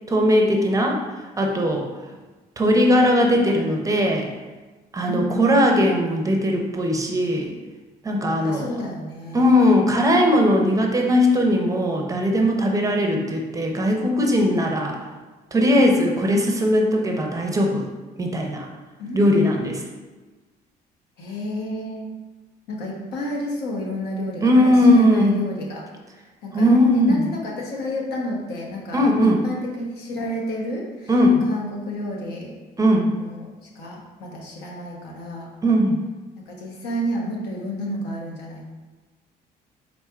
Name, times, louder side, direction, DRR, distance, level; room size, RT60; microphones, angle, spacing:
voice 1, 0.1-1.0 1.4-1.9 2.6-4.3 4.9-7.5 8.0-8.7 9.3-15.0 15.5-17.9 18.2-18.7 19.1-19.8 24.4-25.4 26.5-27.3 28.9-29.4 31.1-31.4 32.8-33.1 35.6-36.0, left 1 dB, 20° right, 1 dB, 0.5 m, -19 dB
voice 2, 5.1-5.5 8.4-9.5 19.0-19.9 21.2-22.1 22.7-25.9 26.4-31.2 31.4-32.6 33.2-35.5 36.5-38.7, equal, 75° left, -2 dB, 1.0 m, -30 dB
4.3 x 4.0 x 2.4 m, 1.2 s
cardioid pair, 110°, 17 cm